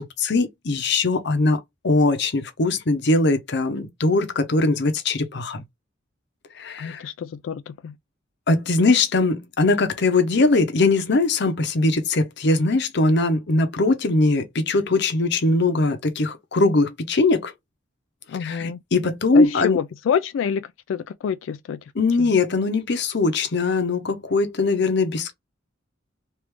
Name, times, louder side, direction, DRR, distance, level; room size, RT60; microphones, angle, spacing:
voice 1, 0.0-5.6 6.5-7.0 8.5-17.5 18.4-19.8 21.9-25.3, left 3 dB, 60° left, 0.8 m, -21 dB
voice 2, 6.8-7.9 18.3-18.8 19.3-21.8 22.2-22.3, left 7 dB, 85° left, 0.3 m, -27 dB
3.4 x 2.5 x 3.0 m
head